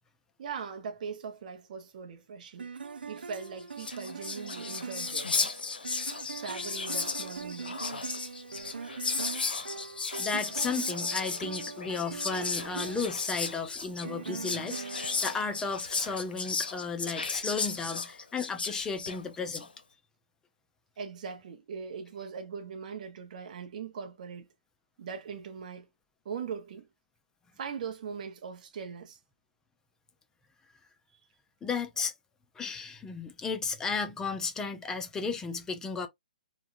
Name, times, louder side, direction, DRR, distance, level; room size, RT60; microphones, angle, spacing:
voice 1, 0.4-2.7 3.0-5.7 6.3-7.9 21.0-24.5 25.0-25.9 26.2-26.9 27.6-29.2 32.8-32.9, right 6 dB, 55° right, 0.7 m, -40 dB
sound 1, 2.6-15.8, right 5 dB, 90° right, 0.4 m, -42 dB
Whispering, 3.4-3.5 3.7-19.7, left 4 dB, 85° left, 0.6 m, -35 dB
voice 2, 10.2-19.7 31.6-32.1 32.5-36.1, left 5 dB, 10° left, 0.5 m, -34 dB
3.0 x 2.2 x 2.6 m
hypercardioid pair, 140°, 5 cm